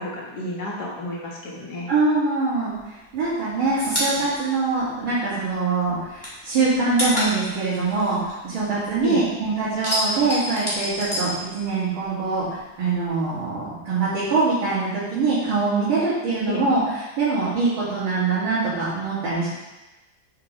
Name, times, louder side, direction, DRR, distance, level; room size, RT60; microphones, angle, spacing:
voice 1, 0.0-1.9 9.0-9.2 16.5-16.6, left 1 dB, 55° left, -4 dB, 2.0 m, -31 dB
voice 2, 1.9-16.8 17.2-19.5, right 3 dB, 75° right, -12 dB, 2.9 m, -23 dB
sound 1, 2.7-5.5 5.8-9.1 9.4-12.0 12.3-13.4, equal, 10° left, 2.0 m, -29 dB
8.6 x 5.8 x 3.2 m, 1.1 s
omnidirectional pair, 2.2 m